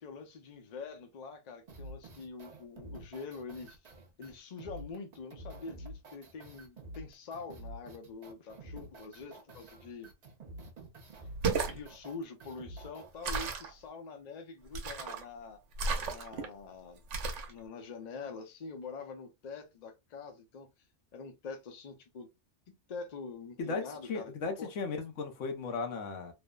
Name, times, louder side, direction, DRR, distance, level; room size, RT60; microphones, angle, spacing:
voice 1, 0.0-3.8 4.2-10.1 11.5-15.6 16.1-17.0 17.5-20.7 21.1-22.3 22.9-24.3 24.6-24.7, left 4 dB, 45° left, 0.6 m, -45 dB
sound 1, 1.7-13.1, right 1 dB, 45° right, 0.7 m, -48 dB
sound 2, 11.3-11.8 13.2-13.7 14.7-15.2 15.8-16.5 17.1-17.5, right 4 dB, 80° right, 1.0 m, -33 dB
voice 2, 23.6-26.3, left 4 dB, 85° left, 1.1 m, -36 dB
3.3 x 2.0 x 2.2 m
omnidirectional pair, 1.2 m